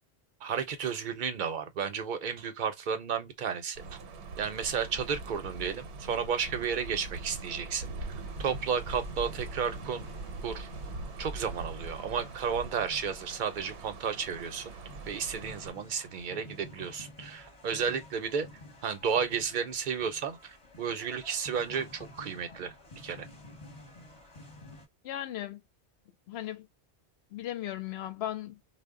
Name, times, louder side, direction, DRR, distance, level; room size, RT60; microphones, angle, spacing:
voice 1, 0.4-3.9 4.4-7.9 8.4-10.1 10.4-10.7 11.2-14.7 15.1-18.5 18.8-22.7 23.0-23.3, right 6 dB, 55° right, 0.7 m, -33 dB
sound 1, 3.7-15.7, right 3 dB, 75° right, 0.9 m, -42 dB
sound 2, 8.2-24.9, left 2 dB, 30° left, 0.8 m, -51 dB
voice 2, 25.0-25.6 26.3-26.7 27.3-28.6, left 12 dB, 70° left, 0.8 m, -36 dB
2.1 x 2.0 x 3.5 m
omnidirectional pair, 1.1 m